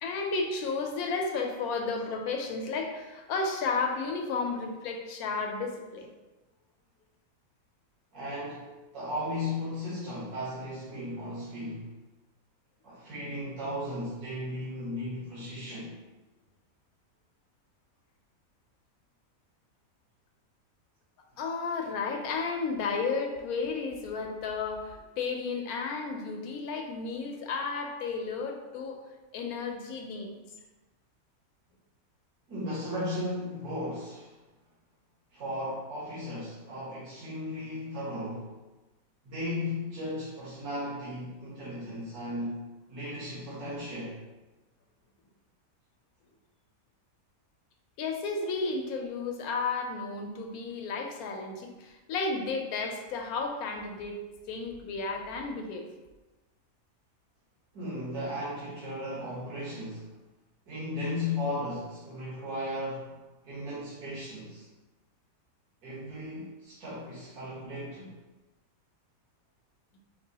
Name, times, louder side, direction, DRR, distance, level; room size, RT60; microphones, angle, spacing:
voice 1, 0.0-6.1 21.4-29.0 29.3-30.3 48.0-54.2 54.5-55.9, left 4 dB, 85° left, 3 dB, 1.1 m, -33 dB
voice 2, 8.1-8.7 8.9-11.9 12.8-15.9 32.5-34.3 35.3-38.5 39.2-42.6 42.9-44.2 57.7-60.1 60.7-63.1 63.4-64.6 65.8-68.1, left 1 dB, 90° right, -8 dB, 1.6 m, -36 dB
4.9 x 3.0 x 2.8 m, 1.1 s
omnidirectional pair, 1.6 m